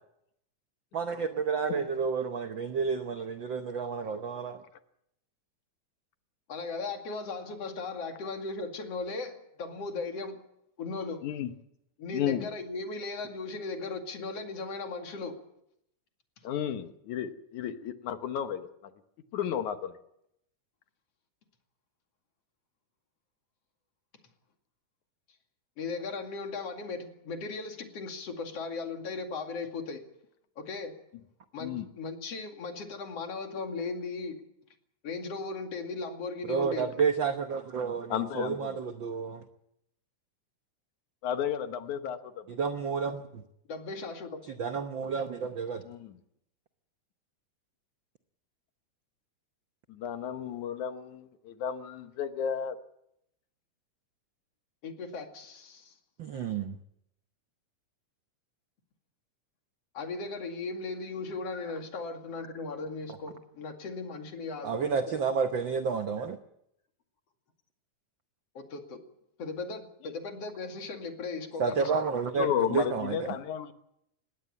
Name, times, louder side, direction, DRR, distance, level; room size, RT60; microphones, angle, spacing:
voice 1, 0.9-4.6 36.5-39.4 42.5-43.4 44.6-45.8 56.2-56.8 64.6-66.4 71.6-73.3, right 5 dB, 75° right, 8 dB, 1.1 m, -30 dB
voice 2, 6.5-10.4 10.8-11.2 12.0-15.4 25.8-30.0 30.6-31.0 31.5-34.4 35.0-37.0 43.7-44.4 54.8-55.9 59.9-65.2 68.5-69.0 69.4-72.0, left 3 dB, 55° left, 5 dB, 3.2 m, -37 dB
voice 3, 11.2-11.5 12.1-12.5 16.4-18.9 19.3-20.0 31.6-31.9 38.1-38.8 41.2-42.5 45.8-46.2 49.9-52.8 70.0-70.1 72.3-73.7, left 9 dB, 75° left, 9 dB, 2.5 m, -33 dB
20.5 x 17.0 x 8.7 m, 0.78 s
omnidirectional pair, 3.6 m